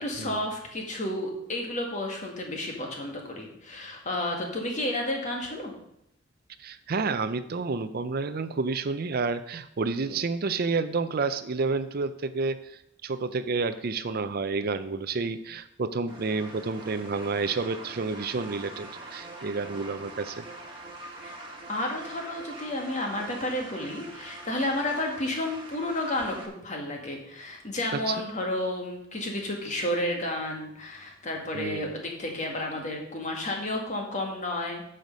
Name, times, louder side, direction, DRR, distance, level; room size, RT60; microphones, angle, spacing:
voice 1, 0.0-5.7 21.2-21.3 21.7-35.0, left 1 dB, 35° left, 1 dB, 1.9 m, -31 dB
voice 2, 6.6-12.6 13.0-20.4 27.9-28.1 31.5-31.9, right 4 dB, 50° right, 12 dB, 0.5 m, -30 dB
sound 1, 16.1-26.5, right 2 dB, 25° right, 1.6 m, -43 dB
9.3 x 6.5 x 5.3 m, 0.76 s
head